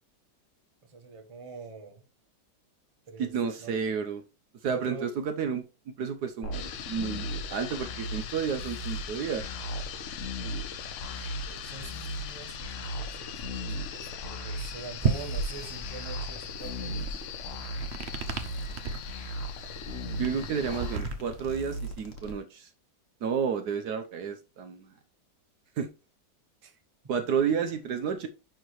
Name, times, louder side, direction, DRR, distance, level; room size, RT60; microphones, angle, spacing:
voice 1, 0.8-2.0 3.1-3.3 3.6-3.7 4.6-5.1 11.1-17.3 26.6-26.8, right 4 dB, 20° right, 1.0 m, -44 dB
voice 2, 3.2-4.2 4.6-9.4 20.2-22.7 23.2-24.9 25.8-25.9 27.1-28.3, right 6 dB, 65° right, 1.2 m, -31 dB
sound 1, 6.4-22.3, right 1 dB, 45° left, 1.7 m, -38 dB
sound 2, 6.5-21.0, left 10 dB, 80° left, 0.6 m, -42 dB
sound 3, 15.0-22.1, right 5 dB, 45° right, 1.0 m, -35 dB
10.0 x 4.6 x 3.1 m
omnidirectional pair, 2.0 m